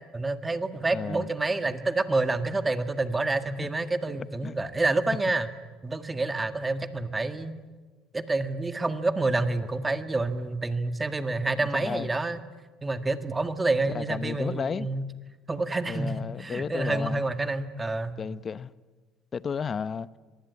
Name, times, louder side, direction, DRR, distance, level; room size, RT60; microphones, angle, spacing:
voice 1, 0.1-5.5 5.8-7.5 8.1-12.4 12.8-15.0 15.5-16.1 16.4-18.1, right 2 dB, 15° right, 1.8 m, -28 dB
voice 2, 0.9-1.3 4.1-4.2 4.4-4.6 11.6-12.1 13.9-14.9 15.9-17.2 18.2-18.7 19.3-20.1, left 6 dB, 35° left, 0.8 m, -33 dB
24.5 x 19.5 x 9.7 m
cardioid pair, 110°, 0 cm